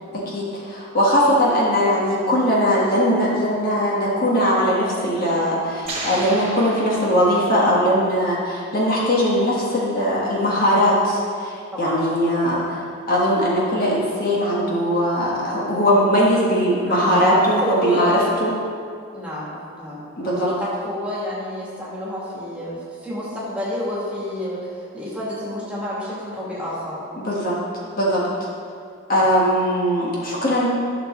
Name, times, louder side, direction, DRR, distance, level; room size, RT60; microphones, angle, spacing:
voice 1, 0.1-12.6 13.1-18.5 20.2-20.5 27.2-27.6 28.0-28.3 29.1-30.7, equal, 40° left, -5 dB, 1.5 m, -20 dB
sound 1, 5.9-7.7, right 2 dB, 30° right, 1.7 m, -33 dB
voice 2, 11.7-12.0 12.3-12.6 16.9-18.3 19.1-27.0, left 1 dB, 5° right, -8 dB, 2.2 m, -29 dB
12.5 x 6.4 x 3.8 m, 2.2 s
head